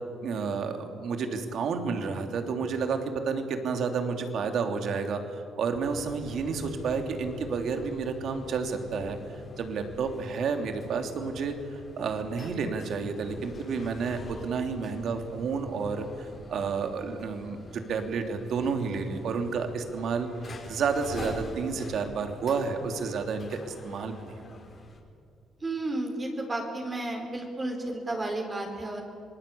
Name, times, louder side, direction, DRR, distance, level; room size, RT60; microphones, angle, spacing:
voice 1, 0.2-5.2 5.6-9.2 9.6-24.6, right 5 dB, 70° right, 5 dB, 3.0 m, -31 dB
sound 1, 5.8-25.0, left 2 dB, 40° left, 4.8 m, -46 dB
voice 2, 25.6-29.0, right 2 dB, 30° right, 1 dB, 4.5 m, -32 dB
26.5 x 20.0 x 8.7 m, 2.5 s
cardioid pair, 90°, 0 cm